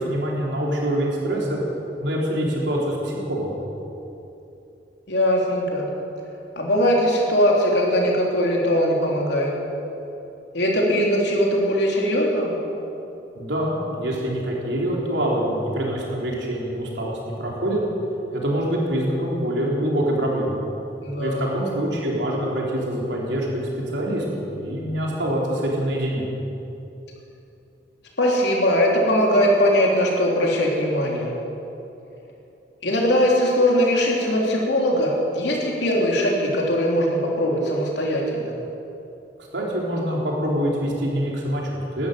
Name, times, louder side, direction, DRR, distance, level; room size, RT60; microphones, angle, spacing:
voice 1, 0.0-1.6 2.0-3.6 13.4-17.8 18.3-20.6 21.2-26.3 39.5-42.1, right 1 dB, 85° right, -3 dB, 3.8 m, -25 dB
voice 2, 5.1-5.9 6.5-9.5 10.5-12.6 21.0-21.7 28.2-31.3 32.8-38.5, equal, 75° left, -2 dB, 3.3 m, -20 dB
12.0 x 12.0 x 9.3 m, 2.9 s
head